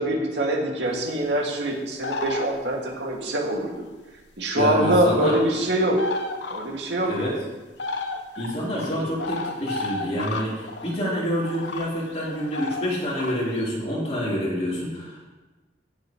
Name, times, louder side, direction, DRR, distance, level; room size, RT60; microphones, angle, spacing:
voice 1, 0.0-3.7 4.4-6.1 6.5-7.3 8.8-9.0, right 1 dB, 90° right, -1 dB, 2.3 m, -24 dB
sound 1, 2.0-2.9 4.2-4.3 4.8-5.6 5.9-7.3 7.8-11.0 11.4-13.7, left 3 dB, 90° left, 1.0 m, -32 dB
voice 2, 4.6-5.4 7.1-7.4 8.4-15.3, equal, 40° left, -7 dB, 3.9 m, -27 dB
18.5 x 7.3 x 3.2 m, 1.2 s
head